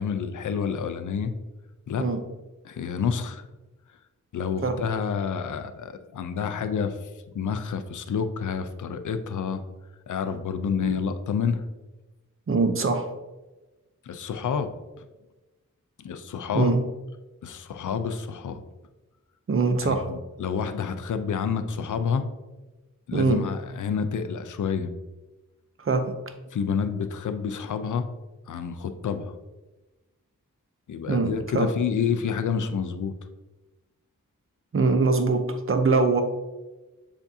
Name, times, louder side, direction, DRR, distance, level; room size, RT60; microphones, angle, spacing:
voice 1, 0.0-1.3 1.9-2.0 2.6-3.4 4.3-7.0 7.3-9.6 10.1-11.6 14.1-14.8 16.0-16.7 17.4-18.6 19.8-22.2 23.1-24.9 26.5-28.1 28.5-29.4 30.9-33.1, left 6 dB, 70° left, 9 dB, 0.5 m, -28 dB
voice 2, 12.5-13.1 16.5-16.8 19.5-20.1 23.1-23.4 25.8-26.1 31.1-31.7 34.7-36.2, right 4 dB, 40° right, 7 dB, 0.6 m, -23 dB
6.9 x 2.7 x 2.6 m, 1.1 s
wide cardioid pair, 85°, 33 cm